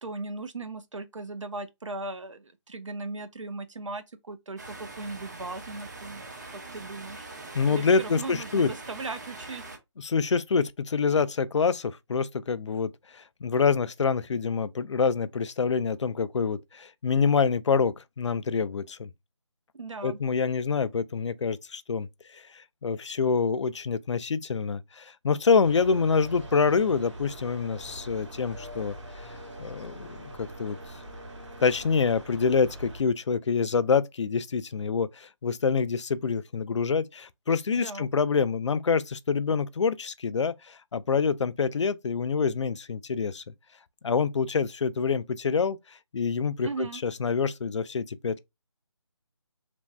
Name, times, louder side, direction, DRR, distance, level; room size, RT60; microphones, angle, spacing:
voice 1, 0.0-7.3 7.7-9.6 19.7-20.2 37.7-38.1 46.6-47.0, right 3 dB, 90° right, 0.6 m, -38 dB
sound 1, 4.6-9.8, right 3 dB, 35° right, 0.6 m, -43 dB
voice 2, 7.5-8.7 10.0-19.1 20.0-22.1 22.3-28.9 29.6-30.8 31.6-43.4 44.0-48.4, left 5 dB, 70° left, 0.4 m, -26 dB
sound 2, 25.6-33.0, right 1 dB, 75° right, 1.0 m, -43 dB
3.0 x 2.5 x 2.2 m
figure-of-eight pair, 165°, 16 cm